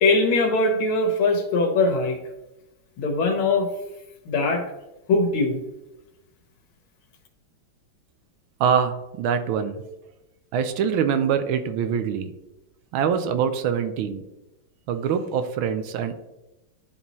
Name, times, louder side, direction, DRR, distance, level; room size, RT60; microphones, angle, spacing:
voice 1, 0.0-2.2 3.0-3.7 4.3-4.6 5.1-5.6, left 3 dB, 85° left, 4 dB, 1.9 m, -21 dB
voice 2, 8.6-9.8 10.5-12.3 12.9-14.2 14.9-16.1, right 7 dB, 85° right, 9 dB, 1.5 m, -24 dB
11.0 x 4.0 x 3.0 m, 0.98 s
omnidirectional pair, 2.2 m